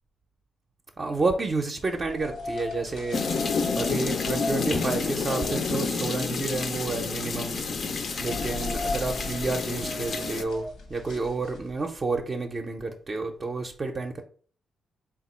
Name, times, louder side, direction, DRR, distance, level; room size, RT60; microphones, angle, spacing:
voice 1, 1.0-3.2 3.8-7.6 8.2-14.2, right 3 dB, 40° right, 0.5 m, -30 dB
sound 1, 1.9-11.9, left 2 dB, 80° left, 1.0 m, -37 dB
sound 2, 3.1-10.4, left 4 dB, 55° left, 0.4 m, -29 dB
3.6 x 2.3 x 4.2 m
cardioid pair, 75°, 0 cm